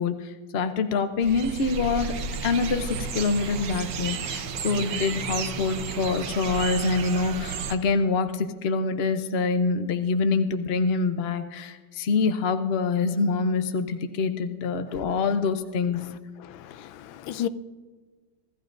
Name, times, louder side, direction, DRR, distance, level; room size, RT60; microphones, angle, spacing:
voice 1, 0.0-2.1 2.4-16.0, left 4 dB, 65° left, 0.6 m, -25 dB
sound 1, 1.2-7.7, right 5 dB, 70° right, 1.6 m, -32 dB
voice 2, 16.5-17.5, left 11 dB, 85° left, 1.4 m, -33 dB
25.0 x 14.0 x 2.6 m
omnidirectional pair, 2.1 m